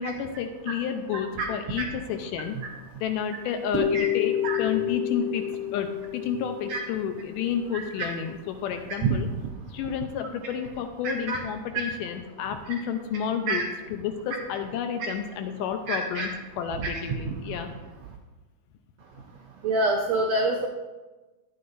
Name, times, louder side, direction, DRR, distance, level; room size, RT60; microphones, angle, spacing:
voice 1, 0.0-2.6 3.0-5.4 5.7-9.3 9.7-16.3 16.6-17.7, left 8 dB, 80° left, 7 dB, 2.1 m, -31 dB
sound 1, 3.7-7.7, left 8 dB, 35° right, 1.0 m, -29 dB
voice 2, 15.9-16.3 17.2-17.3 19.6-20.7, right 3 dB, 80° right, 2 dB, 1.5 m, -26 dB
12.0 x 9.5 x 2.6 m, 1.2 s
omnidirectional pair, 4.0 m